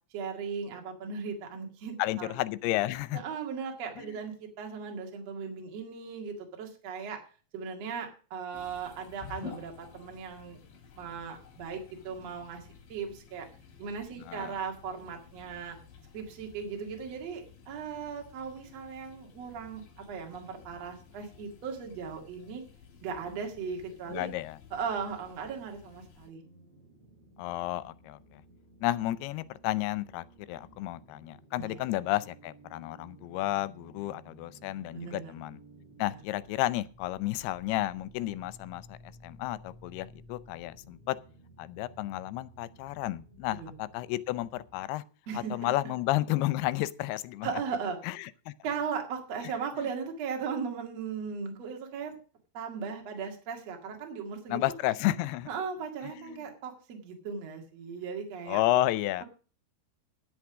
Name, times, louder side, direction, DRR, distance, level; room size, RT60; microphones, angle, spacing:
voice 1, 0.1-2.3 3.1-7.2 7.5-10.6 11.0-13.5 13.8-15.8 16.1-22.6 23.0-24.3 24.7-26.4 31.6-31.8 34.9-35.3 36.1-36.2 43.6-43.7 45.3-45.7 47.4-48.0 48.6-52.2 52.5-54.6 55.5-58.6, right 6 dB, 50° right, 2.8 m, -37 dB
voice 2, 2.0-3.2 4.0-4.2 14.3-14.6 24.1-24.6 27.4-28.4 28.8-35.6 36.0-41.2 41.6-45.0 45.3-47.5 48.0-48.5 49.4-49.9 54.5-55.5 56.0-56.4 58.5-59.2, left 15 dB, 85° left, 2.6 m, -32 dB
sound 1, 8.5-26.3, left 6 dB, 55° left, 3.6 m, -52 dB
sound 2, 26.4-44.9, right 1 dB, 10° left, 5.2 m, -55 dB
10.5 x 8.1 x 6.1 m
omnidirectional pair, 4.5 m